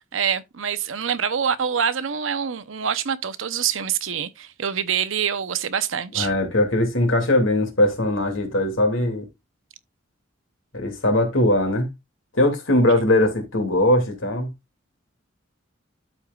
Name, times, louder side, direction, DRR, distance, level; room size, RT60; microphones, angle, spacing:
voice 1, 0.1-6.3, right 7 dB, 80° right, 0.8 m, -25 dB
voice 2, 6.1-9.3 10.7-11.9 12.3-14.5, left 1 dB, 80° left, 2.6 m, -20 dB
13.0 x 4.6 x 2.4 m
head